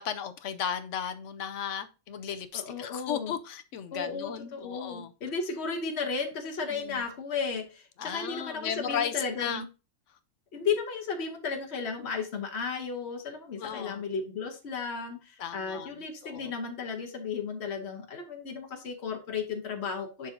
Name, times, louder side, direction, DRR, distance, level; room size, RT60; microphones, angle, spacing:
voice 1, 0.0-5.1 6.7-7.0 8.0-9.7 13.6-14.0 15.4-16.0 16.2-16.5, left 8 dB, 70° left, 0.9 m, -35 dB
voice 2, 2.5-3.3 3.9-9.6 10.5-20.3, left 5 dB, 55° left, 1.4 m, -34 dB
11.0 x 3.8 x 2.7 m
omnidirectional pair, 1.4 m